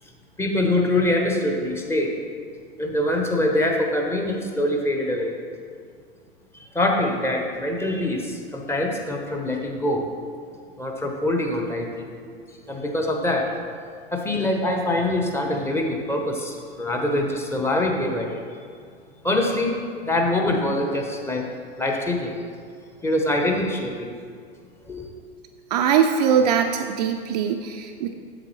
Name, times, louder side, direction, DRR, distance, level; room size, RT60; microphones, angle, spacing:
voice 1, 0.4-2.1 2.8-5.3 6.5-10.1 10.8-12.1 12.7-13.5 14.1-18.4 19.2-21.5 21.8-22.3 23.0-24.1 24.9-25.1, left 1 dB, 10° left, 1 dB, 0.7 m, -24 dB
voice 2, 25.7-28.1, right 7 dB, 45° right, 5 dB, 0.4 m, -21 dB
7.6 x 7.0 x 3.1 m, 2.1 s
figure-of-eight pair, 90°, 30 cm